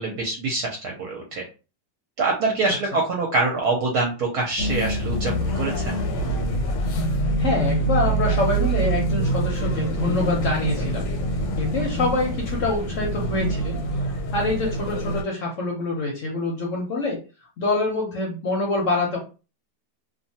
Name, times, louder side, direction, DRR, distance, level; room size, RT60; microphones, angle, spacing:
voice 1, 0.0-1.4 2.2-5.9, right 3 dB, 70° right, 0 dB, 1.1 m, -25 dB
sound 1, 4.6-15.2, right 1 dB, 90° left, 1.3 m, -25 dB
voice 2, 7.4-11.1 11.6-13.8 14.3-17.2 17.6-19.2, left 2 dB, 60° left, -1 dB, 0.8 m, -25 dB
2.8 x 2.2 x 2.7 m, 0.32 s
omnidirectional pair, 1.9 m